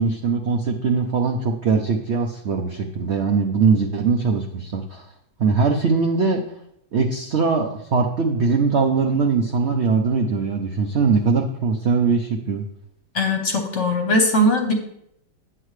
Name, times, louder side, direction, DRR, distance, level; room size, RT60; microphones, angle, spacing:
voice 1, 0.0-5.0 5.4-6.4 6.9-12.6, right 4 dB, 75° right, 3 dB, 0.6 m, -21 dB
voice 2, 13.1-14.7, left 1 dB, 45° left, 4 dB, 1.1 m, -20 dB
10.0 x 7.7 x 3.2 m, 0.74 s
omnidirectional pair, 2.1 m